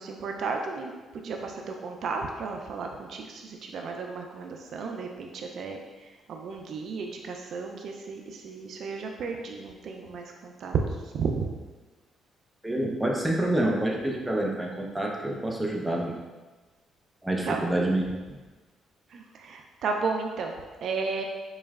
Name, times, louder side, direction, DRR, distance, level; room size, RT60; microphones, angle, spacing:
voice 1, 0.0-10.8 11.0-11.5 17.4-17.6 19.1-21.2, right 5 dB, 65° right, 3 dB, 0.3 m, -33 dB
voice 2, 12.6-16.2 17.2-18.1, right 1 dB, 10° right, -1 dB, 0.6 m, -27 dB
4.5 x 3.0 x 2.3 m, 1.3 s
cardioid pair, 90°, 0 cm